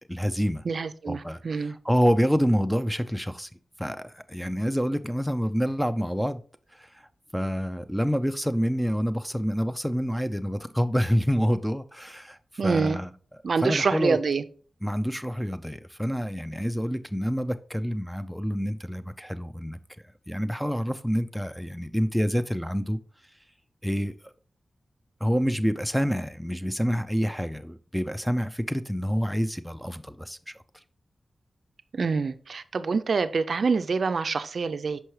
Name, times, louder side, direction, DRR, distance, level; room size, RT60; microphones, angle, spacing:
voice 1, 0.1-0.6 1.1-3.5 3.8-6.4 6.8-6.9 7.3-13.1 13.6-14.2 14.8-19.8 20.3-23.0 23.8-24.1 25.2-30.5, equal, ahead, 0.4 m, -27 dB
voice 2, 0.7-1.8 12.6-13.0 13.4-14.4 31.9-35.0, right 4 dB, 60° right, 0.4 m, -26 dB
5.8 x 5.5 x 3.1 m
wide cardioid pair, 105°, 0 cm